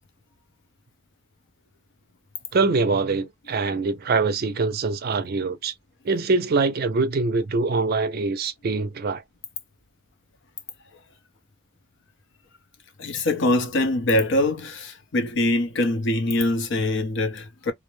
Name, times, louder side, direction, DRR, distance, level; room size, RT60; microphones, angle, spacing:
voice 1, 2.5-5.7 6.0-9.2, right 3 dB, 50° right, 0.4 m, -24 dB
voice 2, 13.0-17.7, left 1 dB, 60° left, 0.6 m, -23 dB
2.4 x 2.0 x 3.0 m
head